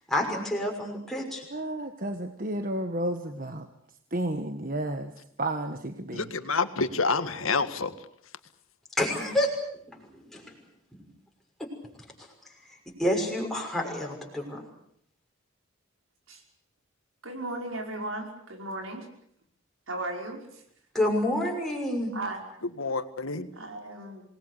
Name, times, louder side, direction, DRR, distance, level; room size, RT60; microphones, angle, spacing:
voice 1, 0.1-1.4 9.0-9.5 9.9-10.6 10.9-11.0 11.6-11.7 13.0-14.6 20.9-22.1, left 1 dB, ahead, -1 dB, 6.1 m, -28 dB
voice 2, 1.5-3.7 4.1-5.1 5.4-6.3, right 1 dB, 40° right, 7 dB, 1.4 m, -32 dB
voice 3, 6.1-7.9 22.8-23.5, left 4 dB, 80° left, 11 dB, 1.8 m, -28 dB
voice 4, 17.2-19.1 19.9-20.6 22.1-22.4 23.5-24.2, right 2 dB, 80° right, 2 dB, 5.5 m, -36 dB
27.5 x 20.0 x 8.3 m, 0.68 s
head